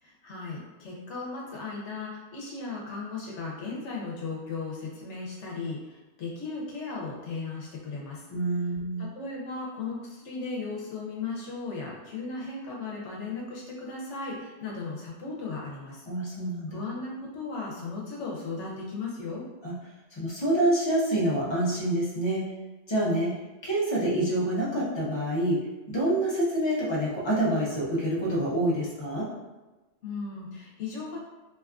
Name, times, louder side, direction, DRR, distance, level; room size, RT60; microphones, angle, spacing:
voice 1, 0.0-8.2 9.0-16.0 16.7-19.4 30.0-31.2, left 4 dB, 85° left, -3 dB, 0.9 m, -36 dB
voice 2, 8.3-9.1 16.1-16.8 19.6-19.7 20.1-22.5 22.9-23.3 23.6-29.3, right 1 dB, 35° left, -6 dB, 0.4 m, -27 dB
2.8 x 2.3 x 2.4 m, 1.1 s
omnidirectional pair, 1.2 m